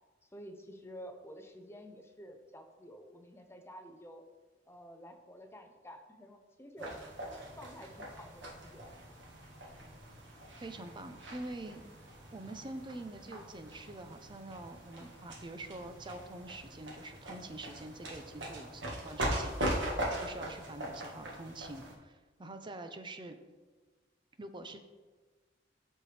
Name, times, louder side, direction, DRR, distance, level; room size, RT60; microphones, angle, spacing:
voice 1, 0.3-4.2 4.7-7.0 7.6-8.8, equal, 15° left, 5 dB, 0.7 m, -50 dB
sound 1, 6.8-21.9, right 1 dB, 75° right, 1.6 m, -41 dB
voice 2, 10.6-11.8 12.3-19.8 20.2-23.4 24.4-24.8, right 2 dB, 25° right, 8 dB, 0.6 m, -45 dB
13.0 x 4.5 x 3.3 m, 1.3 s
head